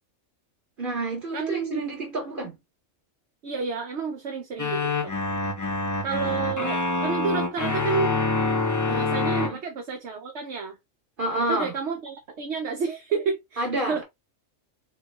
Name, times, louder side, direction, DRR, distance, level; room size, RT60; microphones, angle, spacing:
voice 1, 0.8-2.6 6.2-6.7 9.4-9.6 11.2-11.7 13.6-14.0, right 1 dB, 40° right, 2.1 m, -29 dB
voice 2, 1.3-1.8 3.4-5.1 6.0-8.2 8.9-10.8 11.4-14.0, right 5 dB, 60° right, 1.1 m, -30 dB
sound 1, 4.6-9.5, left 3 dB, 20° left, 0.5 m, -26 dB
6.2 x 2.3 x 3.0 m
omnidirectional pair, 1.3 m